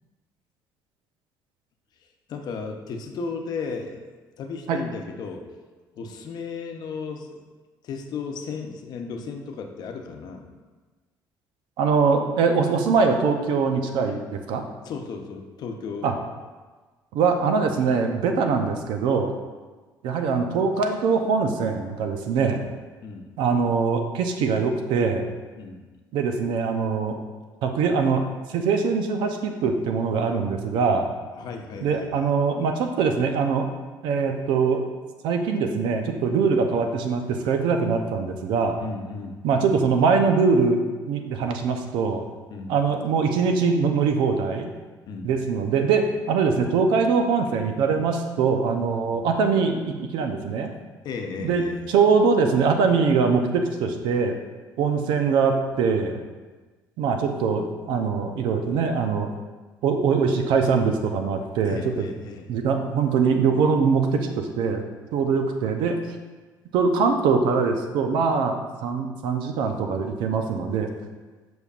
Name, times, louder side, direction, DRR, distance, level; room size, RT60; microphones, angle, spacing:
voice 1, 2.3-4.0 4.4-5.5 6.0-7.4 7.8-10.5 14.8-16.3 22.4-22.6 23.0-23.3 25.6-25.9 31.4-32.2 38.8-39.4 42.5-42.7 45.1-45.3 49.1-49.2 51.0-51.8 61.6-62.5, left 5 dB, 60° left, 4 dB, 0.8 m, -35 dB
voice 2, 11.8-14.6 16.0-16.1 17.1-19.4 20.0-22.6 23.4-25.3 26.1-27.2 27.6-28.2 28.5-31.1 31.8-33.7 34.0-34.8 35.2-38.8 39.4-40.8 41.1-42.2 42.7-44.7 45.2-50.7 51.4-54.4 54.8-56.2 57.0-59.3 59.8-62.1 62.5-64.8 65.1-66.0 66.7-70.9, right 5 dB, 85° right, 5 dB, 0.7 m, -22 dB
6.8 x 6.2 x 2.5 m, 1.3 s
cardioid pair, 100°, 8 cm